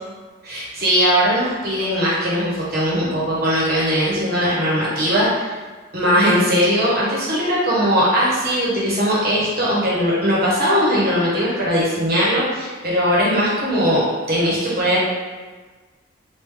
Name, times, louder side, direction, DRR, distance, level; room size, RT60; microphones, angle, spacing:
voice 1, 0.4-5.5 5.9-14.0 14.3-15.0, equal, 50° right, -7 dB, 1.1 m, -19 dB
3.3 x 2.5 x 3.5 m, 1.4 s
head